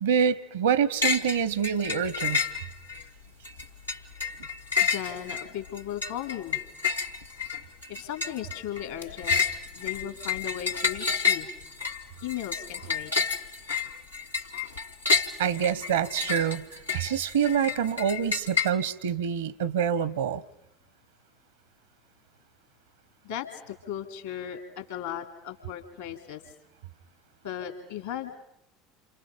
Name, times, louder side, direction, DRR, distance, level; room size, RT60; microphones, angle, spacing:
voice 1, 0.0-2.4 15.4-20.4, right 8 dB, 75° right, 0.9 m, -26 dB
sound 1, 1.0-1.4 1.6-3.0 3.4-18.7, left 6 dB, 90° left, 1.2 m, -29 dB
voice 2, 4.8-6.6 7.9-9.5 9.7-11.5 12.2-13.1 23.2-26.4 27.4-28.4, left 10 dB, 70° left, 2.7 m, -36 dB
28.5 x 27.0 x 5.2 m
figure-of-eight pair, 70°, 0 cm